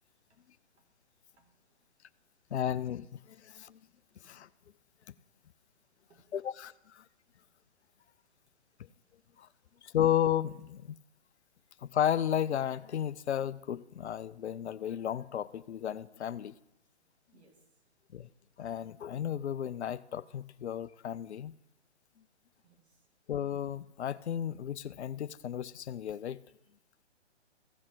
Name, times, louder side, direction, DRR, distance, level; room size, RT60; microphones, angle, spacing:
voice 1, 1.4-1.8 6.1-6.5 9.2-9.3 17.3-17.9 22.6-23.1, right 4 dB, 65° right, 1 dB, 2.6 m, -67 dB
voice 2, 2.5-3.8 4.2-4.5 6.3-7.0 9.4-9.5 9.8-11.0 11.8-16.5 18.1-18.3 18.6-21.5 23.3-26.4, left 10 dB, 70° left, 17 dB, 0.5 m, -33 dB
15.5 x 5.9 x 3.8 m, 0.87 s
figure-of-eight pair, 125°, 34 cm